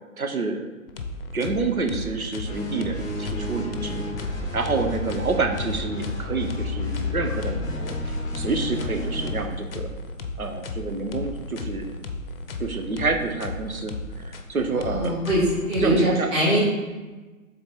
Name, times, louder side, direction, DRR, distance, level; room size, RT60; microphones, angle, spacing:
voice 1, 0.2-0.7 1.3-9.9 10.4-12.0 12.6-15.2 15.8-16.3, right 3 dB, 85° right, 5 dB, 0.9 m, -28 dB
sound 1, 0.9-16.0, left 2 dB, 45° left, 0.6 m, -35 dB
sound 2, 2.4-9.5, left 2 dB, 10° left, 0.9 m, -31 dB
voice 2, 14.9-15.4 15.7-16.6, equal, 15° right, -9 dB, 2.0 m, -22 dB
7.0 x 3.8 x 3.8 m, 1.2 s
figure-of-eight pair, 130°, 42 cm